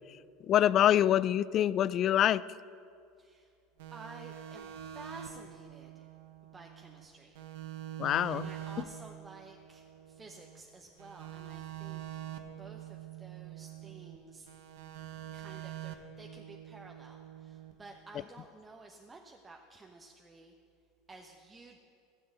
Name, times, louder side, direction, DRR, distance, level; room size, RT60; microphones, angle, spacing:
voice 1, 0.5-2.4 8.0-8.5, left 11 dB, 45° left, 19 dB, 0.3 m, -25 dB
voice 2, 3.2-3.5 3.9-4.7 4.9-6.1 6.5-7.4 8.0-12.2 12.6-14.5 15.3-20.6 21.1-21.8, right 3 dB, 20° right, 2 dB, 1.0 m, -52 dB
sound 1, 3.8-7.1 7.4-10.6 11.0-14.2 14.5-17.7, right 11 dB, 80° right, 1.1 m, -45 dB
15.0 x 7.0 x 7.8 m, 2.4 s
hypercardioid pair, 95°, 0 cm